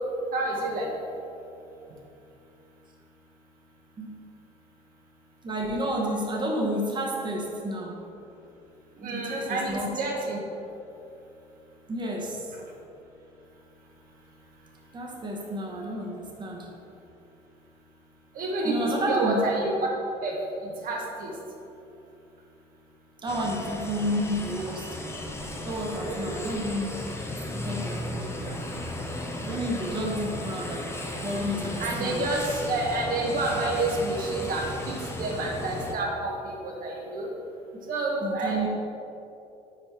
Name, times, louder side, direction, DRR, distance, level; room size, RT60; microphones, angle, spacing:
voice 1, 0.3-0.9 9.0-10.4 18.3-19.7 20.2-20.3 20.6-21.3 26.0-26.5 30.2-30.3 31.8-37.3 37.9-38.6, right 2 dB, 60° right, -2 dB, 1.1 m, -29 dB
voice 2, 5.4-8.1 9.0-10.0 11.9-12.6 14.9-16.8 18.6-19.4 23.2-25.0 25.6-27.0 27.5-28.8 29.4-32.3 38.2-38.7, equal, 25° right, -1 dB, 1.1 m, -31 dB
sound 1, 23.3-35.9, left 1 dB, 15° left, 0.8 m, -35 dB
5.1 x 4.4 x 4.3 m, 2.8 s
supercardioid pair, 65°, 17 cm